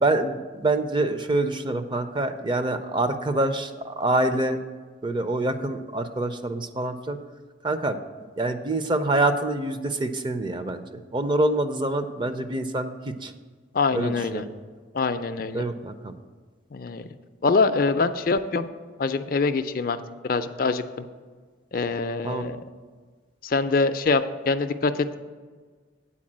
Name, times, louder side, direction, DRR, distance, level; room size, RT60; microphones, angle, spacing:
voice 1, 0.0-4.6 5.0-7.2 7.6-8.0 8.4-13.3 13.9-14.5 15.5-16.1 22.2-22.5, right 2 dB, 25° right, 9 dB, 0.4 m, -26 dB
voice 2, 13.7-14.5 14.9-15.6 16.7-17.1 17.4-18.7 19.0-20.0 20.2-21.1 21.7-22.6 23.4-25.2, left 4 dB, 50° left, 10 dB, 0.4 m, -24 dB
8.6 x 4.5 x 7.3 m, 1.5 s
head